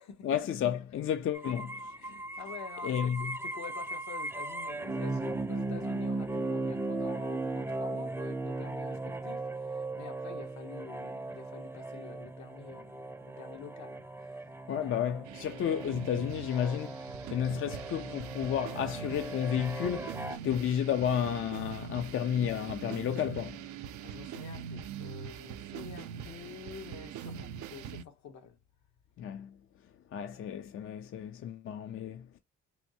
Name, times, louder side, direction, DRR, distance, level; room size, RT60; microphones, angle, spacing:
voice 1, 0.2-1.9 2.8-3.4 14.7-23.6 29.2-29.6 30.1-32.3, left 9 dB, 45° left, 0.4 m, -32 dB
sound 1, 1.3-20.4, right 2 dB, 10° right, 0.5 m, -37 dB
voice 2, 1.9-14.9 24.0-28.6, left 6 dB, 65° left, 0.8 m, -48 dB
sound 2, 15.3-28.0, right 8 dB, 70° right, 0.5 m, -43 dB
3.4 x 2.6 x 2.7 m
cardioid pair, 90°, 30 cm